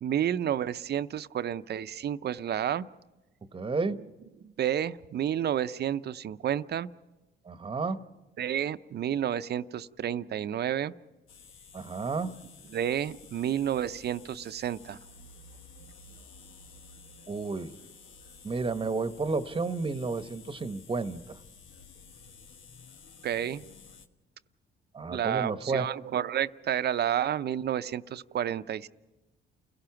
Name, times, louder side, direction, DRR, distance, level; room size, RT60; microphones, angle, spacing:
voice 1, 0.0-2.9 4.4-6.9 8.4-10.9 12.7-15.0 23.2-23.6 25.1-28.9, right 10 dB, 55° right, 13 dB, 0.6 m, -30 dB
voice 2, 3.5-4.0 7.4-8.1 11.7-12.4 17.3-17.7 18.4-21.2 24.9-25.8, right 4 dB, 25° right, 11 dB, 1.0 m, -31 dB
sound 1, 11.3-24.1, left 4 dB, 80° left, 1.2 m, -52 dB
29.5 x 17.0 x 5.9 m, 1.1 s
cardioid pair, 90°, 20 cm